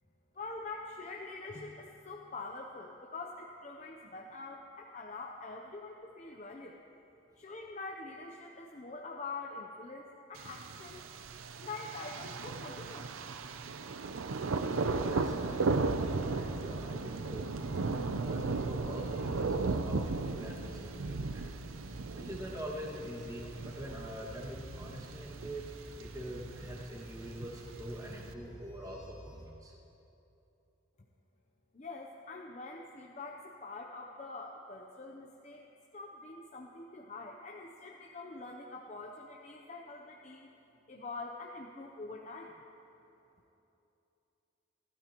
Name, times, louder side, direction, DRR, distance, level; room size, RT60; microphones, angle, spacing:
voice 1, 0.3-6.8 7.4-11.0 11.6-13.1 31.7-35.7 35.9-40.5 40.9-42.6, left 3 dB, 35° left, 0 dB, 0.7 m, -45 dB
Thunder, 10.4-28.3, right 3 dB, 90° right, 0.6 m, -36 dB
voice 2, 14.6-17.7 18.1-21.4 22.1-25.7 26.0-29.7, equal, 15° right, -3 dB, 1.9 m, -44 dB
sound 1, 14.7-29.5, equal, 15° left, 1.6 m, -51 dB
28.5 x 13.0 x 3.0 m, 2.9 s
head